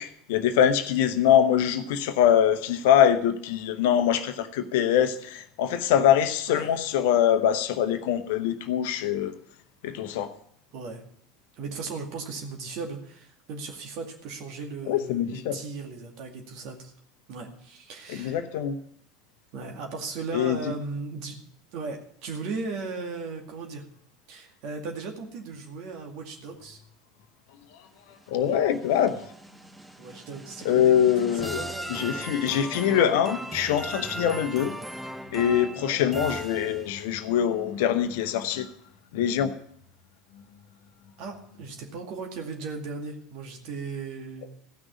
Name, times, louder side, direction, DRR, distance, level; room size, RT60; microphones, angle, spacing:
voice 1, 0.0-9.3 9.8-10.3 14.9-15.6 18.1-18.8 20.3-20.6 28.3-29.2 30.6-31.6 31.9-34.7 35.3-38.7 39.1-39.5, left 9 dB, 60° left, 10 dB, 0.9 m, -23 dB
voice 2, 6.5-6.8 10.7-11.0 11.6-16.9 17.3-18.4 19.5-21.4 21.7-23.9 24.3-26.8 30.0-31.0 31.4-31.9 35.8-36.0 41.2-44.5, right 4 dB, 50° right, 3 dB, 2.3 m, -37 dB
sound 1, 28.2-37.1, right 1 dB, 5° right, 0.9 m, -38 dB
15.0 x 6.2 x 8.2 m, 0.67 s
figure-of-eight pair, 75°, 0 cm